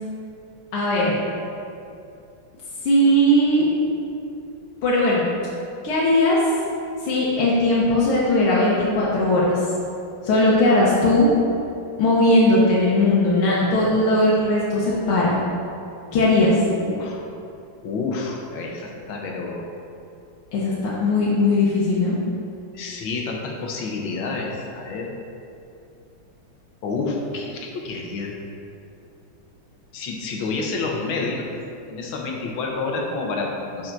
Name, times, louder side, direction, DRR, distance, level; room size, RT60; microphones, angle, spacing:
voice 1, 0.7-1.1 2.9-3.7 4.8-5.3 5.8-6.4 7.0-9.5 10.2-11.3 12.0-15.4 16.1-16.5 20.5-20.7 21.0-22.2, left 1 dB, 85° left, -7 dB, 1.8 m, -18 dB
voice 2, 16.7-17.2 17.8-19.7 22.7-25.1 26.8-28.4 29.9-31.5 31.9-33.9, left 3 dB, 70° left, 0 dB, 1.6 m, -29 dB
8.8 x 5.8 x 2.6 m, 2.6 s
omnidirectional pair, 2.3 m